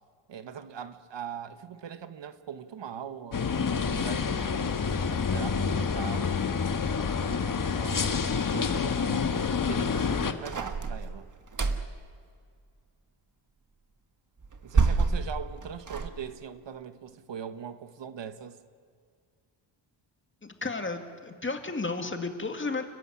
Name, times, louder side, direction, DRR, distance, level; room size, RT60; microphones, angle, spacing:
voice 1, 0.3-6.4 7.8-11.3 14.6-18.6, right 8 dB, 60° right, 1.2 m, -41 dB
sound 1, 3.3-10.3, left 5 dB, 40° left, 1.5 m, -28 dB
sound 2, 10.5-12.0 14.4-16.1, right 4 dB, 40° right, 1.5 m, -27 dB
voice 2, 20.4-22.8, left 3 dB, 25° left, 2.0 m, -33 dB
29.5 x 14.5 x 9.9 m
wide cardioid pair, 130°, 49 cm